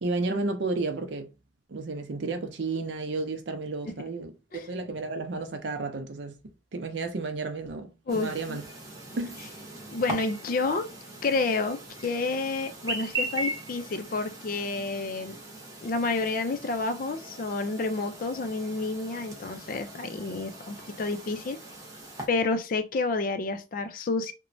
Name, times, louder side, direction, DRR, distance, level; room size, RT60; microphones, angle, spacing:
voice 1, 0.0-1.3 1.7-6.3 6.7-8.6 9.2-9.4, right 3 dB, 75° right, 0.5 m, -32 dB
voice 2, 8.1-8.6 9.9-10.9 11.2-15.4 15.8-21.6 22.3-24.3, left 3 dB, 50° left, 0.4 m, -29 dB
Chirp tweet, 8.1-22.3, right 2 dB, 20° right, 0.8 m, -39 dB
3.0 x 2.1 x 2.6 m
head